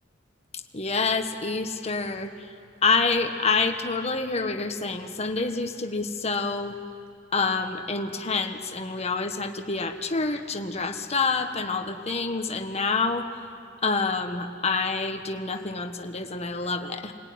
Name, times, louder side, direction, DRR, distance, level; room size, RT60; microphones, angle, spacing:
voice 1, 0.7-2.5 2.8-6.8 7.3-13.3 13.8-17.1, left 4 dB, 35° left, 5 dB, 1.4 m, -27 dB
28.0 x 18.5 x 9.5 m, 2.4 s
head